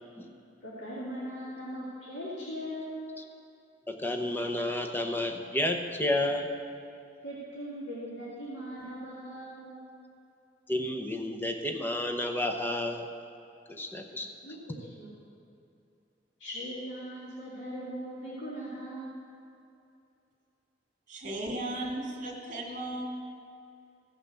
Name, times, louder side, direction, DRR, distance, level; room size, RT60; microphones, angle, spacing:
voice 1, 0.6-3.0 7.2-9.8 14.4-14.6 14.9-15.1 16.4-19.2, equal, 85° left, -8 dB, 2.3 m, -39 dB
voice 2, 3.9-6.5 10.7-13.1 13.7-14.3, left 1 dB, 10° left, 3 dB, 0.9 m, -31 dB
voice 3, 21.1-23.0, right 1 dB, 45° right, -1 dB, 2.2 m, -36 dB
15.5 x 5.8 x 6.8 m, 2.6 s
head